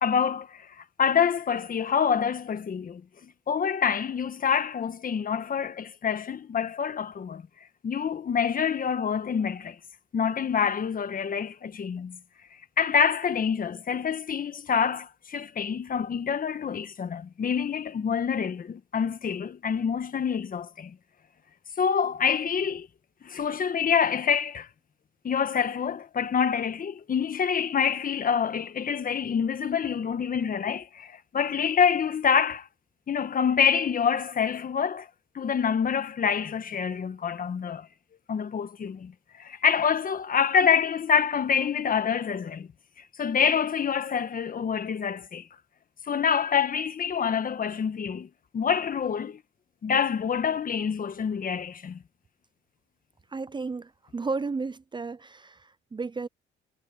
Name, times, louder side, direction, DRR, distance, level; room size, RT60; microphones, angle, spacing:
voice 1, 0.0-7.4 7.8-9.8 10.1-12.2 12.8-20.9 21.8-22.9 23.2-24.7 25.2-32.7 33.1-35.1 35.3-37.9 38.3-39.1 39.4-42.7 43.2-45.5 46.1-49.4 49.8-52.0, left 7 dB, 45° left, 1.5 m, -26 dB
voice 2, 53.3-56.3, right 4 dB, 25° right, 0.6 m, -33 dB
cardioid pair, 90°, 20 cm